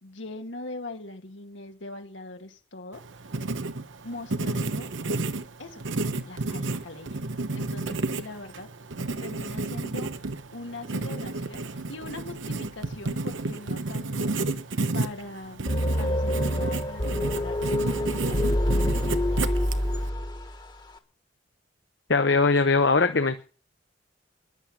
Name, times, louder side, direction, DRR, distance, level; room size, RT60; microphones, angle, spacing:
voice 1, 0.0-3.0 4.0-4.9 5.6-5.8 6.3-7.2 7.5-8.7 9.2-10.2 10.5-14.5 14.9-15.7 16.0-19.7, left 2 dB, 85° left, 5 dB, 2.2 m, -41 dB
Writing, 2.9-20.1, right 2 dB, 85° right, 1.0 m, -31 dB
sound 1, 15.7-20.7, left 1 dB, 25° left, 1.5 m, -26 dB
voice 2, 22.1-23.4, left 4 dB, 65° left, 8 dB, 1.0 m, -21 dB
14.0 x 11.0 x 7.2 m, 0.40 s
head